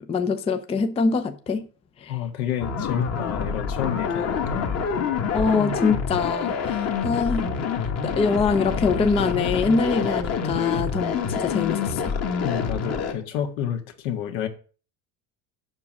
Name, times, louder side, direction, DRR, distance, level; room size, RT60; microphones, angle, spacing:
voice 1, 0.1-1.7 2.0-2.2 5.3-7.5 8.0-12.2, left 4 dB, 15° left, 0.5 m, -24 dB
voice 2, 2.1-4.7 12.4-14.5, left 10 dB, 70° left, 1.9 m, -30 dB
sound 1, 2.6-13.1, left 6 dB, 35° left, 1.5 m, -27 dB
7.4 x 6.1 x 7.4 m
supercardioid pair, 140°, 46 cm